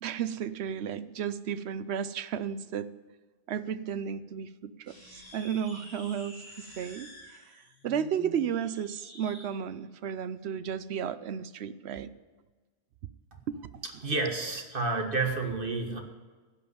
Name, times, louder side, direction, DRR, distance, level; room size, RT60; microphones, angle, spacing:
voice 1, 0.0-2.9 3.5-12.1 13.5-13.8, right 8 dB, 75° right, 14 dB, 0.9 m, -34 dB
sound 1, 4.8-9.5, equal, 20° left, 2.8 m, -50 dB
voice 2, 13.8-16.0, right 3 dB, 55° right, 3 dB, 1.8 m, -30 dB
16.0 x 5.4 x 9.6 m, 1.3 s
omnidirectional pair, 1.1 m